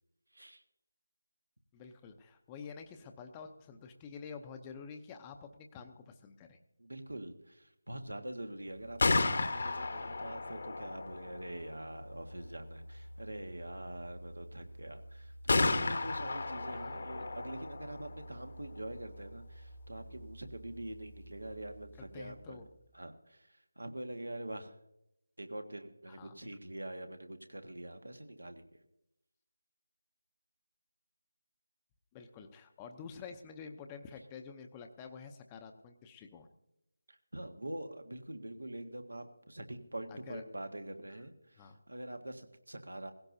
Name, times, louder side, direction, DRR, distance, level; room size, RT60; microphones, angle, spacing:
voice 1, 1.7-6.6 16.7-17.0 22.1-22.7 26.1-26.6 32.1-36.5 40.1-40.4 41.6-41.8, left 6 dB, 15° left, 5 dB, 0.7 m, -49 dB
voice 2, 6.8-22.6 22.9-23.5 23.8-24.7 25.4-28.7 37.1-43.1, right 1 dB, 85° right, 7 dB, 1.6 m, -44 dB
Gunshot gunfire, 8.8-22.6, left 3 dB, 55° left, 1.1 m, -37 dB
17.5 x 16.0 x 2.7 m, 0.85 s
figure-of-eight pair, 160°, 0 cm